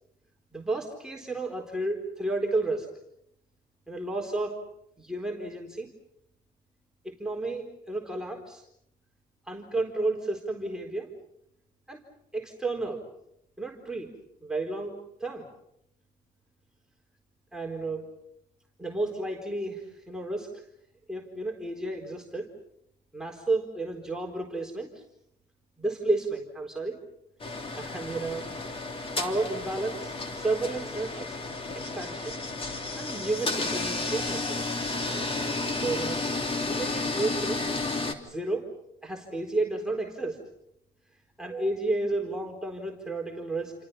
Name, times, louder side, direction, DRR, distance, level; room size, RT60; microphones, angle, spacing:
voice 1, 0.5-2.9 3.9-4.6 5.0-5.9 7.0-8.6 9.5-11.1 11.9-12.0 12.3-13.1 13.6-14.1 14.4-15.5 17.5-18.1 18.8-20.6 21.1-22.5 23.1-24.9 25.8-27.0 27.7-28.5 29.2-31.4 31.7-32.3 33.0-34.9 35.8-36.2 36.7-37.6 38.2-38.7 39.0-40.4 41.4-43.7, right 2 dB, 5° right, 0 dB, 4.2 m, -32 dB
sound 1, 27.4-38.1, left 3 dB, 35° left, 3.3 m, -32 dB
29.5 x 27.0 x 5.8 m, 0.76 s
cardioid pair, 110°, 17 cm